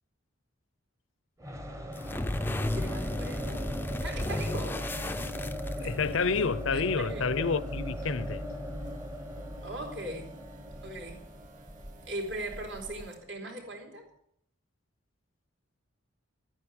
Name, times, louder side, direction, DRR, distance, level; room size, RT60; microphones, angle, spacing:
sound 1, 1.4-13.2, equal, 15° right, 1.1 m, -38 dB
sound 2, 1.9-6.2, left 1 dB, 10° left, 0.5 m, -34 dB
sound 3, 2.3-13.2, right 1 dB, 35° right, 2.8 m, -52 dB
voice 1, 2.7-3.6 4.0-6.0 6.7-7.2 9.6-10.4 10.8-11.3 12.1-14.0, right 1 dB, 60° right, 3.9 m, -40 dB
voice 2, 5.8-8.4, left 5 dB, 70° left, 0.7 m, -29 dB
12.5 x 9.5 x 8.8 m
head